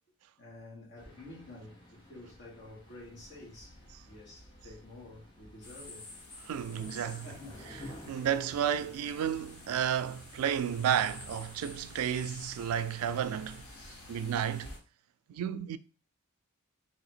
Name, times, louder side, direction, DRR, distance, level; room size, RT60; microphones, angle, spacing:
voice 1, 0.4-3.8 4.1-6.1 7.1-8.3 14.2-14.5, left 2 dB, 55° left, 1.6 m, -50 dB
sound 1, 1.0-14.7, equal, 20° left, 1.0 m, -53 dB
sound 2, 5.6-14.8, left 2 dB, 90° left, 1.2 m, -51 dB
voice 2, 6.4-7.3 8.1-13.7 14.1-14.7 15.3-15.8, right 9 dB, 75° right, 0.3 m, -32 dB
3.0 x 2.7 x 4.2 m
head